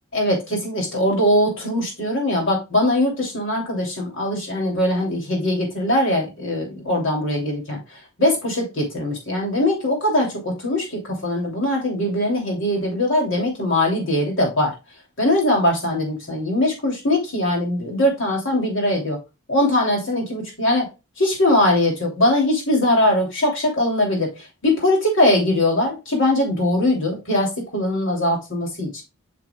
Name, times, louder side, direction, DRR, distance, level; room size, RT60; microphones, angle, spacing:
voice 1, 0.1-14.7 15.2-19.2 19.5-20.9 21.2-29.0, left 1 dB, 60° left, 2.8 m, -21 dB
7.7 x 6.0 x 2.3 m
head